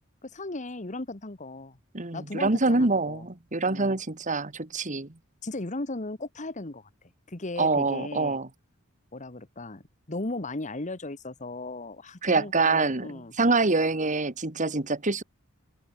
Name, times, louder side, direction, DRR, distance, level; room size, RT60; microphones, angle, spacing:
voice 1, 0.2-1.8 2.1-3.2 3.6-4.0 5.4-6.9 7.3-8.4 9.1-13.3, left 2 dB, 35° left, 1.5 m, -36 dB
voice 2, 1.9-5.1 7.6-8.5 12.2-13.1 13.4-15.2, right 3 dB, 35° right, 1.8 m, -25 dB
open air
head